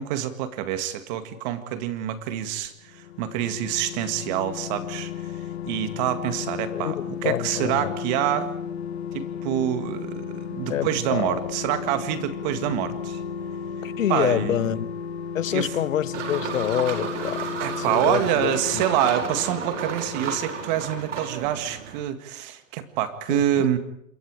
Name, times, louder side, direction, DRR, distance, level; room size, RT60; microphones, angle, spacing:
voice 1, 0.0-5.3 5.7-8.5 9.1-13.2 14.1-14.8 15.5-15.7 17.6-23.8, right 11 dB, 35° right, 2.0 m, -26 dB
sound 1, 2.8-21.2 21.4-21.5, left 7 dB, 55° left, 1.8 m, -34 dB
voice 2, 6.7-8.0 10.7-11.4 13.8-14.9 15.3-17.4 17.8-18.8 23.3-23.4, left 11 dB, 75° left, 1.1 m, -27 dB
sound 2, 16.1-22.0, right 6 dB, 65° right, 5.0 m, -33 dB
27.5 x 22.5 x 4.9 m
hypercardioid pair, 155°, 40 cm